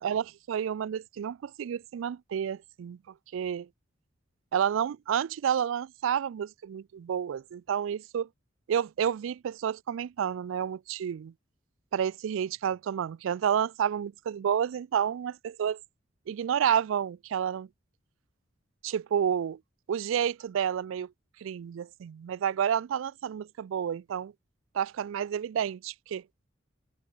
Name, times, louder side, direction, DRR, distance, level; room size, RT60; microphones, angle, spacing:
voice 1, 0.0-3.0 3.3-3.7 4.5-8.3 8.7-11.3 11.9-15.8 16.3-17.7 18.8-19.6 19.9-21.1 21.4-24.3 24.7-26.2, right 8 dB, 75° right, 0.3 m, -30 dB
head